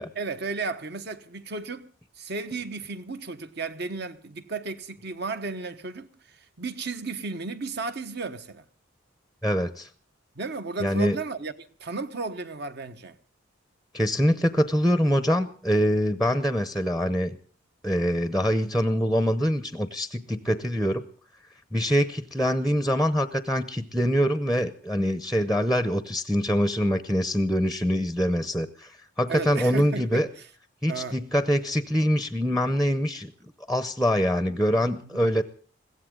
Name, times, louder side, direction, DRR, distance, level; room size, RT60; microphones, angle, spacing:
voice 1, 0.1-8.6 10.3-11.5 11.8-13.2 29.3-30.3 30.9-31.2 35.0-35.3, right 3 dB, 55° right, 1.2 m, -34 dB
voice 2, 9.4-9.9 10.8-11.2 13.9-17.4 17.8-21.0 21.7-28.9 29.2-30.3 30.8-33.3 33.7-35.4, equal, ahead, 0.8 m, -24 dB
22.0 x 16.0 x 3.8 m
head